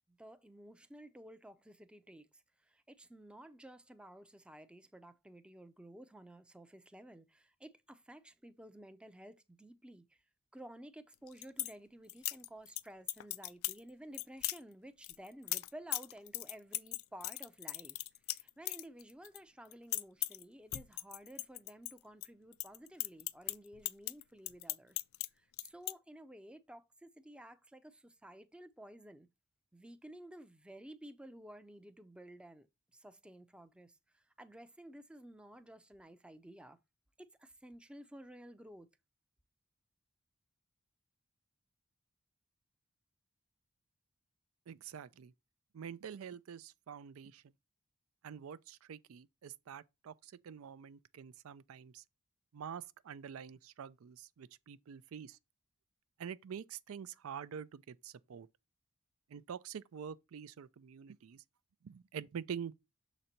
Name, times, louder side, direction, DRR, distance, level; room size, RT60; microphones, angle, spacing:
voice 1, 0.1-10.2 10.5-18.0 18.3-25.0 25.3-29.3 29.7-32.7 32.9-36.8 37.2-38.9, right 1 dB, 5° right, 0.5 m, -54 dB
sound 1, 11.1-11.7 12.1-12.8 13.1-13.8 14.1-14.6 15.0-19.4 19.6-20.4 20.7-22.3 22.5-25.3 25.5-25.9, left 17 dB, 80° left, 0.4 m, -38 dB
voice 2, 44.7-45.3 45.7-47.4 48.2-52.0 52.5-55.4 56.2-58.5 59.3-61.4 61.8-62.7, right 7 dB, 85° right, 0.4 m, -46 dB
6.6 x 4.1 x 4.3 m
head